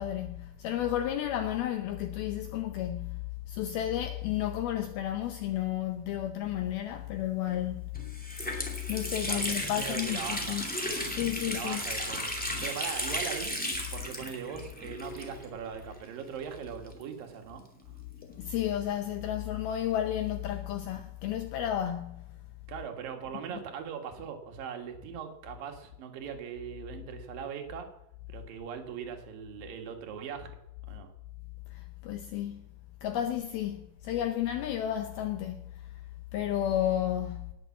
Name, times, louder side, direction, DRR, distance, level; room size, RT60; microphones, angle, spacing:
voice 1, 0.0-3.2 3.5-7.8 8.9-10.8 11.0-11.8 18.2-22.2 23.5-23.6 31.7-32.6 33.0-36.0 36.3-37.5, left 11 dB, 80° left, 2.2 m, -32 dB
Water tap faucet, 7.5-7.6 7.9-15.7 15.9-16.0 16.9-18.4, equal, 5° left, 0.7 m, -35 dB
voice 2, 9.3-10.6 11.5-12.3 12.6-13.6 13.9-17.6 22.7-27.9 28.3-30.5 30.9-31.1, right 7 dB, 60° right, 2.9 m, -40 dB
19.0 x 7.0 x 7.3 m
omnidirectional pair, 5.4 m